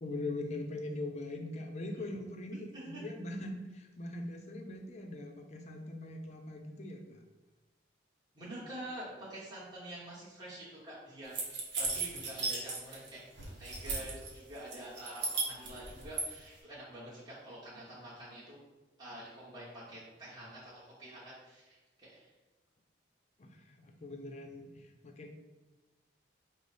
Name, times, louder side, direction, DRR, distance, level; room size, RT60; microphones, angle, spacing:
voice 1, 0.0-7.2 23.4-23.5 24.0-25.3, left 2 dB, 35° left, 4 dB, 0.5 m, -41 dB
voice 2, 2.5-3.0 8.3-11.3 11.8-18.6 19.0-20.7 21.0-22.3, right 1 dB, 20° right, -10 dB, 1.0 m, -47 dB
sound 1, 11.3-13.1 13.4-14.3 14.7-16.3, right 4 dB, 65° right, 0.9 m, -35 dB
4.9 x 2.0 x 4.0 m, 1.2 s
head